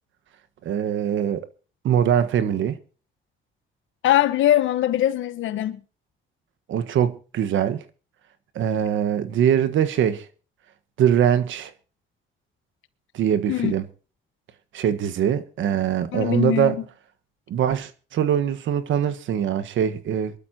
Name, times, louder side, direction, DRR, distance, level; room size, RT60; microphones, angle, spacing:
voice 1, 0.6-1.5 1.8-2.8 6.7-7.8 8.5-10.3 11.0-11.7 13.1-13.8 14.7-16.7 17.5-20.3, right 9 dB, 75° right, 1.4 m, -22 dB
voice 2, 4.0-5.8 13.5-13.7 16.1-16.8, left 12 dB, 80° left, 1.2 m, -21 dB
23.5 x 12.5 x 2.8 m
cardioid pair, 90°, 20 cm